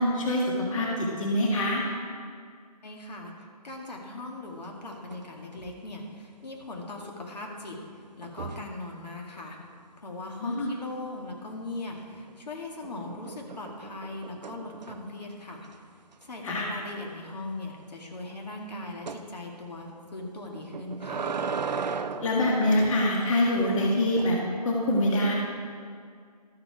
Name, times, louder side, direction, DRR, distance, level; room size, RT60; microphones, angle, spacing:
voice 1, 0.0-1.9 10.4-10.7 16.4-16.7 22.2-24.4 24.6-25.3, left 1 dB, 50° left, -2 dB, 1.8 m, -25 dB
voice 2, 2.8-7.8 8.2-9.6 10.0-15.7 16.2-21.2, left 2 dB, 80° left, 0 dB, 2.2 m, -39 dB
sound 1, 4.6-5.3 5.5-5.9 8.2-8.8 11.9-12.4 12.8-15.2 15.6-15.8 16.1-16.2 16.6-16.7 19.1-19.3 20.5-23.0 23.8-24.3, right 5 dB, 90° right, 0.6 m, -36 dB
13.0 x 7.7 x 4.8 m, 2.2 s
hypercardioid pair, 165°, 21 cm